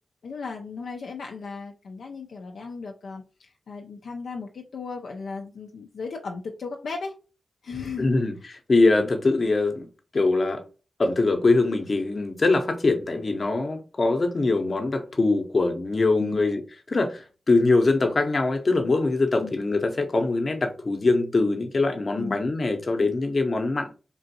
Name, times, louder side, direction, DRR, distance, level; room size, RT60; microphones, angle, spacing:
voice 1, 0.2-7.1 7.6-8.2 9.0-9.1 16.2-16.4 19.4-19.5 22.2-22.4, left 4 dB, 85° left, 0.4 m, -36 dB
voice 2, 8.0-8.3 8.7-9.9 10.1-10.6 11.0-16.6 16.9-23.9, left 3 dB, 55° left, 0.8 m, -23 dB
3.7 x 2.5 x 2.7 m
cardioid pair, 50°, 0 cm